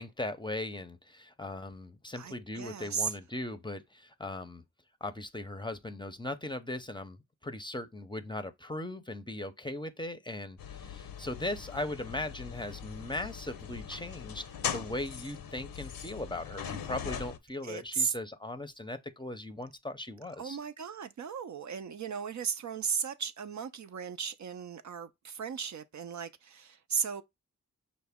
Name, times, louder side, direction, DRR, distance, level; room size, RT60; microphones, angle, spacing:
voice 1, 0.0-4.6 5.0-7.2 7.4-20.6, left 1 dB, 15° left, 0.6 m, -39 dB
voice 2, 2.1-3.1 17.6-18.1 20.4-27.2, right 6 dB, 55° right, 0.5 m, -36 dB
sound 1, 10.6-17.4, left 8 dB, 85° left, 0.6 m, -40 dB
5.6 x 2.1 x 3.5 m
cardioid pair, 45°, 34 cm